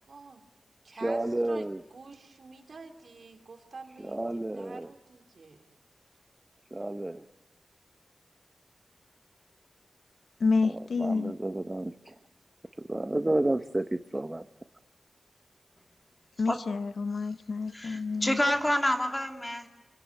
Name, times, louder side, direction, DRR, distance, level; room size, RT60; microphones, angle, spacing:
voice 1, 0.1-0.4 0.8-5.8, right 4 dB, 65° right, 5 dB, 3.1 m, -48 dB
voice 2, 0.9-1.8 4.0-4.9 6.7-7.2 10.6-10.7 11.0-12.1 12.9-14.4, right 1 dB, 20° right, 9 dB, 0.8 m, -31 dB
voice 3, 10.4-11.3 16.4-18.4, left 4 dB, 85° left, 13 dB, 0.8 m, -29 dB
voice 4, 17.7-19.7, left 1 dB, 15° left, 4 dB, 2.6 m, -28 dB
28.0 x 17.5 x 9.4 m, 1.1 s
wide cardioid pair, 90°, 0 cm